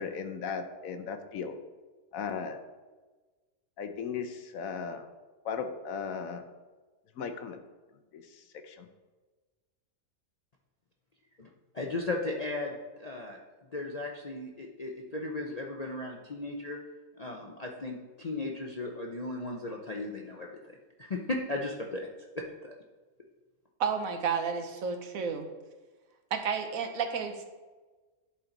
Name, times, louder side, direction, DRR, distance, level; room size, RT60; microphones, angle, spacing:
voice 1, 0.0-1.6 2.1-2.6 3.8-5.1 5.4-6.4 7.2-7.6 8.1-8.9, left 6 dB, 70° left, 7 dB, 1.1 m, -37 dB
voice 2, 11.7-13.4 13.7-16.8 17.2-20.5 21.0-22.1 22.3-22.7, left 2 dB, 45° left, -1 dB, 0.5 m, -36 dB
voice 3, 23.8-25.5 26.3-27.4, right 6 dB, 70° right, 6 dB, 1.2 m, -31 dB
11.0 x 4.4 x 3.9 m, 1.3 s
omnidirectional pair, 1.5 m